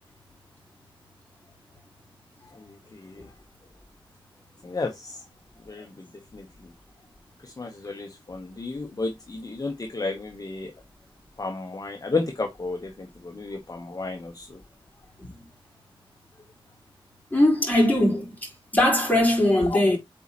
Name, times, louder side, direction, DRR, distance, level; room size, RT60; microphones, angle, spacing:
voice 1, 2.9-3.3 4.6-5.2 5.7-5.9 6.3-6.4 7.4-10.7 11.4-14.6 19.7-19.8, left 3 dB, 40° left, 1.0 m, -32 dB
voice 2, 17.3-20.0, left 1 dB, 15° left, 4.1 m, -21 dB
8.0 x 4.3 x 3.0 m
wide cardioid pair, 80°, 9 cm